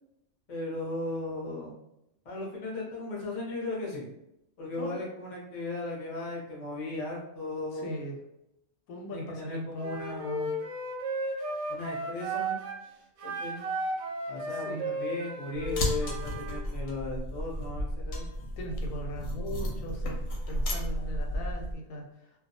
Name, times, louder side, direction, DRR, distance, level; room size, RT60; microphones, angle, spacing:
voice 1, 0.5-1.7 2.2-4.1 4.6-8.0 9.1-10.5 11.7-12.6 13.2-13.6 14.3-18.3, left 2 dB, 40° left, -3 dB, 0.5 m, -37 dB
voice 2, 7.7-8.2 8.9-9.9 14.5-14.9 18.6-20.2 20.5-22.4, equal, 90° left, 1 dB, 1.0 m, -39 dB
Wind instrument woodwind instrument, 9.8-12.8 13.2-16.6, right 1 dB, 65° right, 0.7 m, -34 dB
sound 1, 15.5-21.7, equal, 65° left, 0.8 m, -33 dB
2.3 x 2.2 x 2.7 m, 0.82 s
omnidirectional pair, 1.5 m